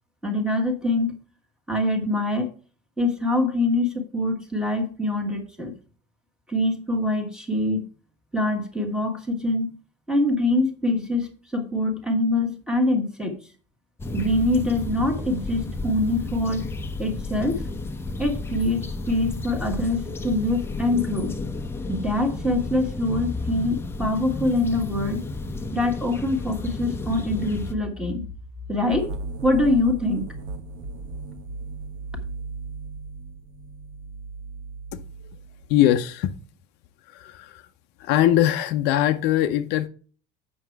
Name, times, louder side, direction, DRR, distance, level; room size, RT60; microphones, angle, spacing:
voice 1, 0.2-1.2 1.7-2.5 3.0-5.7 6.5-7.8 8.3-9.7 10.1-13.4 14.1-16.7 17.0-17.6 18.2-21.3 21.9-25.2 25.7-28.2 28.7-29.1 29.4-30.3, left 1 dB, 5° right, 1.4 m, -24 dB
sound 1, 14.0-27.7, left 2 dB, 10° left, 0.7 m, -32 dB
sound 2, 28.9-35.7, right 3 dB, 90° right, 1.2 m, -36 dB
voice 2, 35.7-36.3 37.1-37.6 38.0-39.9, left 12 dB, 60° left, 0.6 m, -21 dB
7.8 x 6.2 x 4.6 m
cardioid pair, 155°, 19 cm